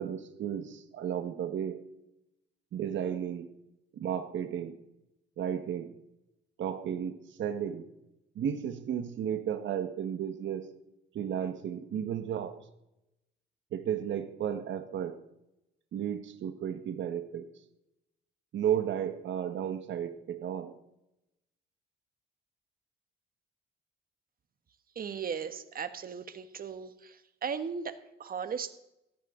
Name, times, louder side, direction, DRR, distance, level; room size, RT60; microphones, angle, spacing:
voice 1, 0.0-1.8 2.7-3.5 3.9-4.8 5.4-5.9 6.6-7.9 8.3-10.6 11.1-12.6 13.7-15.2 15.9-17.5 18.5-20.7, right 9 dB, 70° right, 9 dB, 1.5 m, -33 dB
voice 2, 24.9-27.2 27.4-28.7, right 6 dB, 45° right, 10 dB, 1.4 m, -37 dB
17.0 x 14.5 x 3.9 m, 0.86 s
cardioid pair, 90°, 20 cm